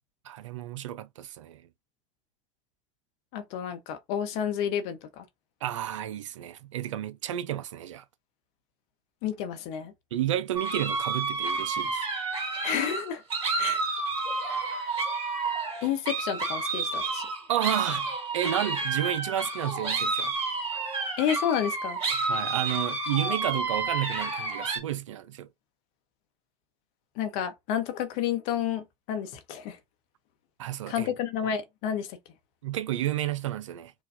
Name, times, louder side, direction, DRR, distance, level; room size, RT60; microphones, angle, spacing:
voice 1, 0.3-1.6 5.6-8.0 10.1-12.0 17.5-18.1 18.3-20.3 22.2-25.5 30.6-31.1 32.6-33.9, right 12 dB, 85° right, 0.4 m, -31 dB
voice 2, 3.3-5.2 9.2-9.9 12.6-13.2 13.6-13.8 15.8-17.3 21.2-22.0 27.2-29.8 30.9-32.2, left 9 dB, 65° left, 1.0 m, -30 dB
sound 1, 10.6-24.8, right 3 dB, 40° right, 2.2 m, -30 dB
4.6 x 2.3 x 2.7 m
hypercardioid pair, 75°, 16 cm